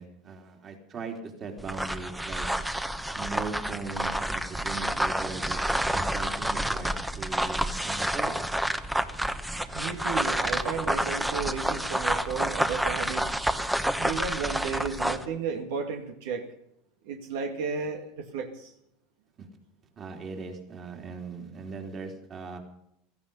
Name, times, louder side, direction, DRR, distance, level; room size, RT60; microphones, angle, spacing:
voice 1, 0.0-2.5 3.2-8.5 19.4-19.5 20.0-22.6, right 4 dB, 35° right, 3 dB, 3.5 m, -39 dB
sound 1, 1.6-15.3, right 1 dB, 5° right, 1.1 m, -29 dB
voice 2, 9.7-13.3 14.0-16.5 17.0-18.7, right 5 dB, 75° right, 4 dB, 2.1 m, -33 dB
16.5 x 14.5 x 5.5 m, 0.77 s
supercardioid pair, 115°, 0 cm